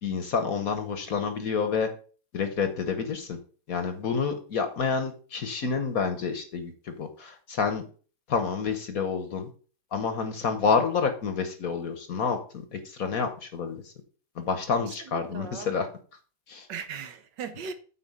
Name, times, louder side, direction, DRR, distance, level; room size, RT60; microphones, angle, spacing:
voice 1, 0.0-1.9 2.3-3.4 3.7-7.8 8.3-9.5 9.9-13.8 14.4-15.9 16.5-16.7, left 5 dB, 55° left, 1.3 m, -28 dB
voice 2, 14.8-15.7 16.7-17.7, right 6 dB, 70° right, 1.5 m, -38 dB
8.6 x 4.3 x 5.5 m
omnidirectional pair, 2.1 m